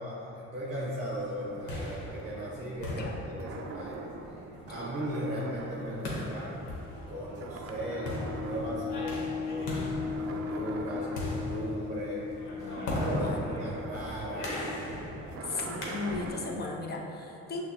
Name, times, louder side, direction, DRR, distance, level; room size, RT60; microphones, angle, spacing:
voice 1, 0.0-6.5 7.1-9.8 10.2-12.2 12.6-14.7, equal, 25° right, -6 dB, 0.7 m, -38 dB
sound 1, 0.6-7.1 7.4-9.4 9.8-17.0, right 4 dB, 50° right, 0.4 m, -44 dB
sound 2, 1.3-16.5, left 1 dB, 80° left, 1.0 m, -38 dB
sound 3, 7.6-15.0, left 5 dB, 50° left, 0.9 m, -38 dB
voice 2, 12.6-13.5 15.4-17.6, left 3 dB, 35° left, -1 dB, 0.6 m, -37 dB
6.2 x 2.1 x 2.8 m, 2.9 s
cardioid pair, 90°, 30 cm